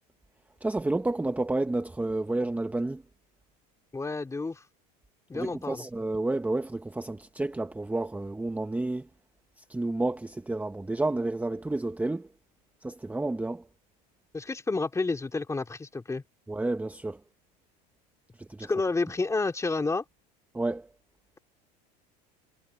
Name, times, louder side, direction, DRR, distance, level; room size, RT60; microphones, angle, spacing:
voice 1, 0.6-3.0 5.3-9.1 9.6-12.3 12.8-13.6 16.5-17.2 18.4-18.7 20.5-20.9, right 2 dB, 5° right, 1.0 m, -30 dB
voice 2, 3.9-4.6 5.3-5.8 14.3-16.2 18.6-20.0, left 3 dB, 15° left, 2.7 m, -30 dB
supercardioid pair, 105°, 21 cm